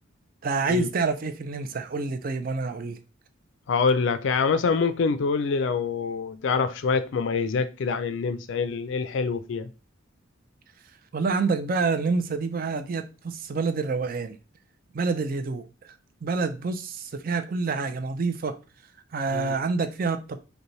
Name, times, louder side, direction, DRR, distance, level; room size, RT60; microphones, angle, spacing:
voice 1, 0.4-3.0 11.1-14.3 14.9-15.9 16.2-18.5 19.1-20.4, right 4 dB, 45° right, 0.4 m, -27 dB
voice 2, 3.7-9.7 19.3-19.5, left 5 dB, 65° left, 0.4 m, -25 dB
5.2 x 2.2 x 3.1 m
head